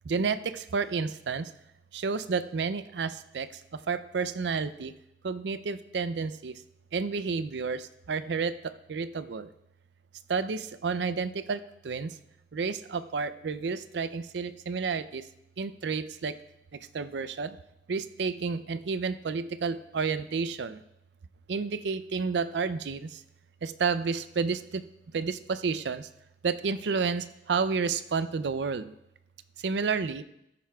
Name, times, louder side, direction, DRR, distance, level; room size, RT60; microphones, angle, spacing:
voice 1, 0.1-1.5 1.9-3.5 3.9-4.9 5.2-6.5 6.9-8.5 8.9-9.5 10.3-11.6 11.8-12.1 12.5-15.2 15.6-16.3 16.9-17.6 17.9-20.8 21.5-23.1 23.6-24.8 25.1-26.1 26.4-28.9 29.6-30.2, right 5 dB, 80° right, 12 dB, 0.5 m, -30 dB
13.5 x 10.0 x 2.3 m, 0.82 s
head